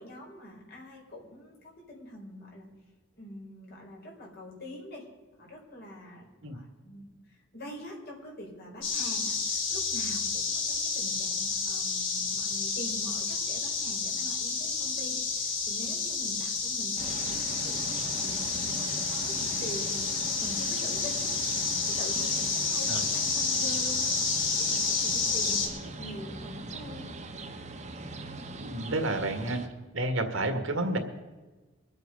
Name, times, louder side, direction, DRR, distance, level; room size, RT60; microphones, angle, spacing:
voice 1, 0.0-2.7 3.2-5.1 5.4-20.0 20.4-21.3 21.9-24.1 24.6-27.2, equal, 55° left, -1 dB, 4.3 m, -44 dB
sound 1, 8.8-25.7, left 4 dB, 75° left, 4.1 m, -30 dB
sound 2, 17.0-29.7, right 2 dB, 35° right, 1.2 m, -41 dB
voice 2, 28.6-29.6 29.9-31.0, right 2 dB, 80° right, 6 dB, 1.9 m, -30 dB
23.0 x 8.2 x 5.3 m, 1.2 s
head